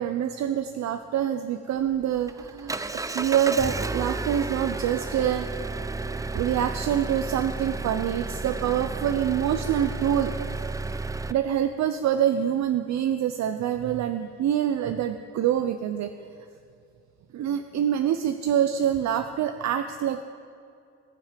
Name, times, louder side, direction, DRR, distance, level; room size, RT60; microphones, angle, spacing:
voice 1, 0.0-2.8 3.1-5.6 6.3-10.6 11.3-16.1 17.3-20.2, right 10 dB, 65° right, 9 dB, 0.6 m, -26 dB
Engine, 1.8-11.3, right 3 dB, 10° right, 0.4 m, -32 dB
19.0 x 6.4 x 5.1 m, 2.4 s
cardioid pair, 90°, 30 cm